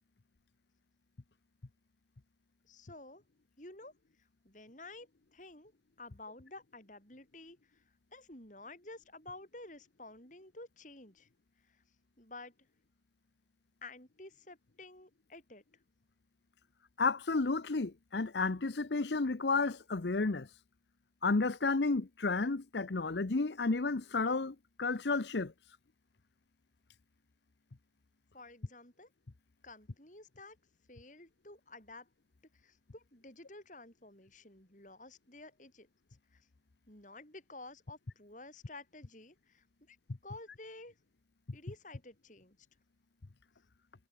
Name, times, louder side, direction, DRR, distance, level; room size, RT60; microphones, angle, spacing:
voice 1, 2.6-3.2 3.6-3.9 4.4-5.7 6.0-7.8 8.1-11.3 11.7-11.8 12.2-12.5 13.8-15.6 28.3-29.1 29.6-30.6 30.9-32.1 32.5-35.9 36.3-36.5 36.9-40.0 40.2-40.9 41.5-42.6, left 2 dB, 45° left, 7.6 m, -52 dB
voice 2, 17.0-20.5 21.2-25.5, left 3 dB, 70° left, 0.8 m, -32 dB
head